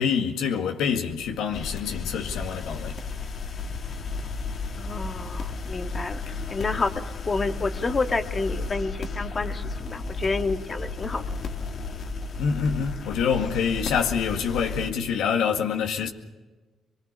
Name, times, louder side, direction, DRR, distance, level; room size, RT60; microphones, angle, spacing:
voice 1, 0.0-3.0 6.3-6.4 12.4-16.1, left 6 dB, 85° left, 2.0 m, -26 dB
sound 1, 1.5-14.9, left 4 dB, 55° left, 2.2 m, -33 dB
voice 2, 4.8-11.2, left 3 dB, 30° left, 2.0 m, -29 dB
23.5 x 23.5 x 6.8 m
cardioid pair, 90°, 0 cm